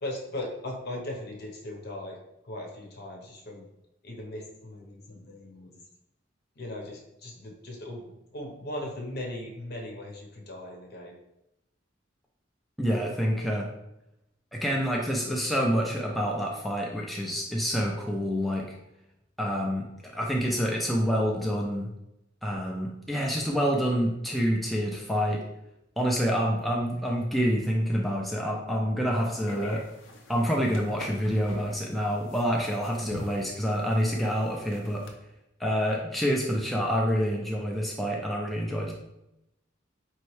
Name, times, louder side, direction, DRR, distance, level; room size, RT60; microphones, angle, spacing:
voice 1, 0.0-2.2 2.4-3.7 4.0-5.7 6.6-8.0 8.3-11.2, left 1 dB, 55° left, 0 dB, 0.9 m, -38 dB
voice 2, 12.8-13.7 14.5-18.6 19.4-19.8 20.1-21.9 22.4-25.4 26.0-29.8 30.3-35.0 35.6-38.9, equal, ahead, -2 dB, 0.4 m, -27 dB
sound 1, 29.2-35.1, left 1 dB, 85° left, 0.6 m, -44 dB
4.4 x 3.0 x 3.1 m, 0.88 s
head